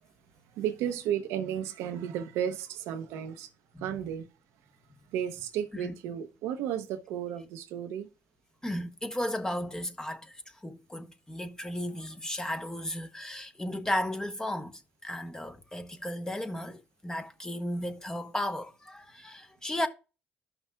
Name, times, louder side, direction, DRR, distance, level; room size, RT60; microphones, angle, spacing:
voice 1, 0.6-3.5 3.8-4.3 5.1-8.1, right 9 dB, 85° right, 0.8 m, -33 dB
voice 2, 3.7-4.1 5.7-5.9 8.6-19.9, left 1 dB, 15° left, 1.0 m, -35 dB
13.0 x 5.9 x 2.3 m
supercardioid pair, 75°, 5 cm